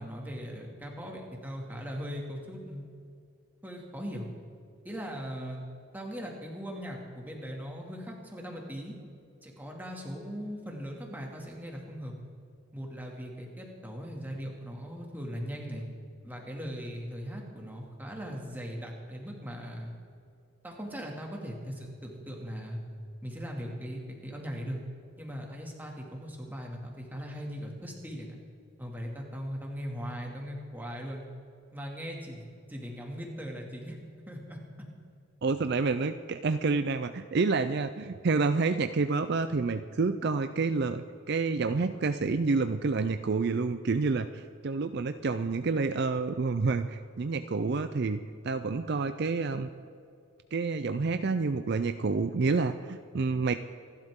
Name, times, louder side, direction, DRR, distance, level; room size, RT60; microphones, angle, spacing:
voice 1, 0.0-2.8 3.6-4.3 4.8-5.6 5.9-9.0 9.4-12.1 12.7-15.8 16.2-20.0 20.6-22.8 23.2-24.8 25.2-28.4 28.8-31.2 31.7-32.4 32.7-34.0 34.3-34.6, equal, 10° right, -1 dB, 2.3 m, -39 dB
voice 2, 35.4-48.2 48.4-49.7 50.5-53.6, right 4 dB, 50° right, 9 dB, 0.5 m, -28 dB
27.0 x 12.0 x 3.7 m, 2.5 s
head